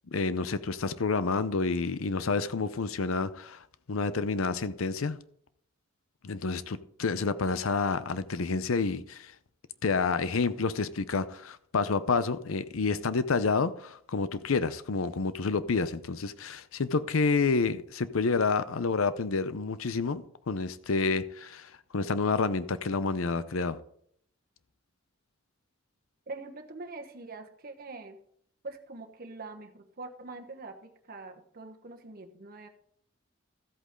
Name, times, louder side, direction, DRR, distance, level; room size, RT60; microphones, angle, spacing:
voice 1, 0.1-5.2 6.2-9.3 9.8-23.8, left 4 dB, 85° left, 14 dB, 0.7 m, -29 dB
voice 2, 26.3-28.2 28.6-32.7, right 3 dB, 45° right, 4 dB, 1.2 m, -44 dB
13.5 x 8.2 x 3.7 m, 0.67 s
head